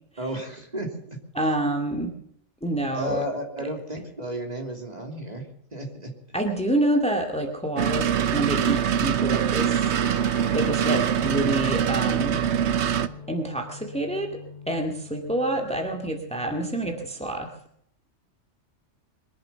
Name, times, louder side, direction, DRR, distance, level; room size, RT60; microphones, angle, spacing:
voice 1, 0.2-1.2 2.9-5.4 5.7-6.1, equal, 35° right, 2 dB, 3.2 m, -33 dB
voice 2, 1.4-2.1 2.6-3.2 3.6-3.7 6.3-9.9 10.4-12.4 13.3-14.4 14.7-17.5, right 1 dB, 5° left, 3 dB, 2.1 m, -27 dB
sound 1, 7.8-13.1, right 9 dB, 70° right, 1.1 m, -23 dB
Guitar, 9.9-17.6, left 4 dB, 40° left, 4.5 m, -43 dB
23.0 x 11.0 x 5.8 m, 0.69 s
omnidirectional pair, 1.2 m